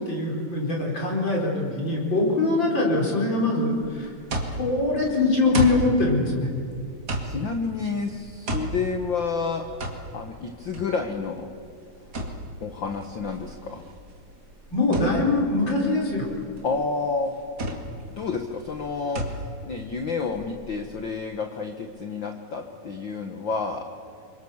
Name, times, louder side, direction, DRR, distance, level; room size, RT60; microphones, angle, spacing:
voice 1, 0.0-4.1 4.6-6.5 14.7-16.3, left 2 dB, 35° left, -2 dB, 5.1 m, -23 dB
sound 1, 3.8-21.0, right 1 dB, 35° right, 2.4 m, -34 dB
voice 2, 7.2-9.6 10.1-11.5 12.6-13.8 16.6-17.3 18.1-19.4 19.7-23.8, left 4 dB, 65° left, 5 dB, 1.1 m, -29 dB
27.0 x 24.0 x 7.2 m, 2.4 s
omnidirectional pair, 3.9 m